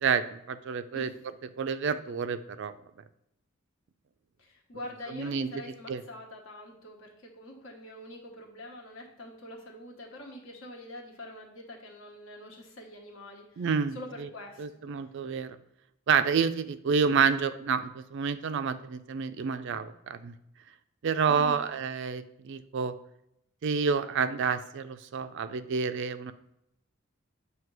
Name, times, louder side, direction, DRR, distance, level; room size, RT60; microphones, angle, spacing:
voice 1, 0.0-1.1 1.6-2.7 5.1-6.0 13.6-14.3 14.6-15.6 16.1-20.3 21.0-22.9 23.6-26.3, right 6 dB, 60° right, 12 dB, 0.4 m, -29 dB
voice 2, 4.4-13.7 13.9-14.6 21.3-21.7, left 1 dB, 65° left, 0 dB, 1.2 m, -45 dB
7.5 x 2.8 x 4.7 m, 0.82 s
head